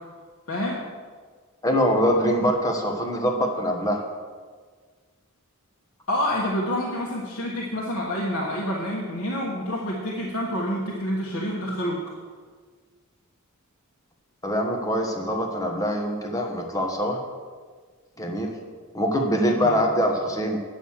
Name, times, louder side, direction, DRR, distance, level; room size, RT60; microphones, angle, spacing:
voice 1, 0.5-0.8 6.1-12.0 19.6-19.8, equal, 65° left, -4 dB, 1.5 m, -28 dB
voice 2, 1.6-4.0 14.4-17.2 18.2-18.6 18.9-20.6, equal, 15° left, 1 dB, 1.2 m, -24 dB
9.2 x 6.4 x 7.2 m, 1.5 s
head